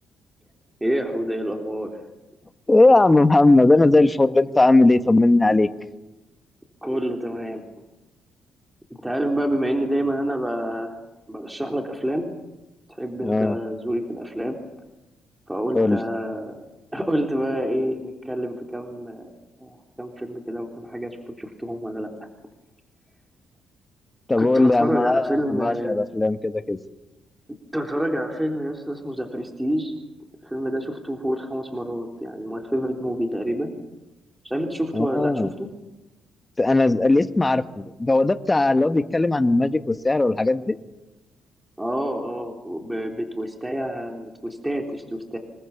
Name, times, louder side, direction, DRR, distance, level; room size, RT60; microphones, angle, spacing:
voice 1, 0.8-2.0 6.8-7.6 9.0-11.0 11.3-12.3 12.9-14.6 15.5-16.6 16.9-19.3 19.6-22.1 24.4-26.0 27.7-29.9 30.4-33.7 34.4-35.7 41.8-45.4, equal, 10° right, 2 dB, 3.6 m, -28 dB
voice 2, 2.7-5.7 13.2-13.6 15.7-16.0 24.3-26.8 34.9-35.5 36.6-40.8, left 2 dB, 20° left, 10 dB, 1.5 m, -18 dB
27.0 x 25.5 x 7.2 m, 1.0 s
cardioid pair, 90°, 0 cm